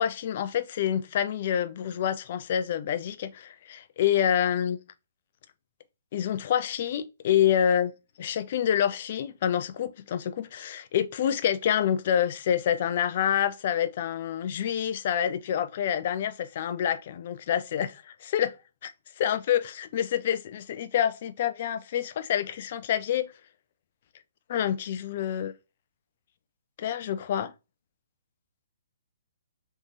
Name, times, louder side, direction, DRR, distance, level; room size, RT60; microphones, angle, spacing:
voice 1, 0.0-4.8 6.1-7.9 8.2-18.6 18.8-23.3 24.5-25.5 26.8-27.5, left 9 dB, 50° left, 0.5 m, -27 dB
3.4 x 3.3 x 2.7 m
figure-of-eight pair, 130°, 0 cm